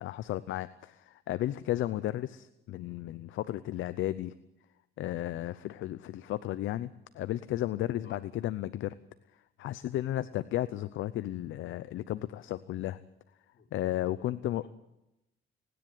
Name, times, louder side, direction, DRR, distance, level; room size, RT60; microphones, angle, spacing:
voice 1, 0.0-4.3 5.0-6.9 7.1-8.9 9.6-13.0 13.7-14.6, left 14 dB, 80° left, 14 dB, 0.7 m, -34 dB
voice 2, 13.5-14.7, left 6 dB, 60° left, 2 dB, 3.5 m, -57 dB
29.5 x 10.5 x 9.2 m, 0.90 s
cardioid pair, 90°, 20 cm